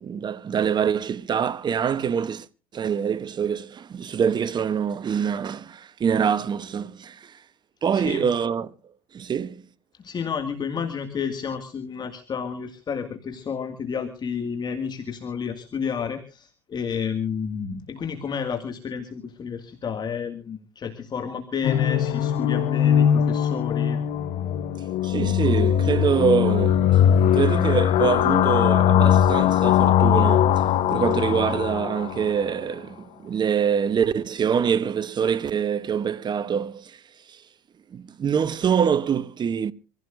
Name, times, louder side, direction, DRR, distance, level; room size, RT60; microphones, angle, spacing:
voice 1, 0.0-2.5 2.7-7.4 7.8-8.7 9.1-9.6 25.0-26.9 27.2-37.0 37.3-37.4 37.9-39.7, right 7 dB, 35° right, 0.9 m, -25 dB
voice 2, 7.9-8.3 10.0-24.0, left 6 dB, 35° left, 2.1 m, -31 dB
sound 1, 21.6-32.4, left 10 dB, 55° left, 1.1 m, -20 dB
25.5 x 15.5 x 2.6 m
supercardioid pair, 95°, 13 cm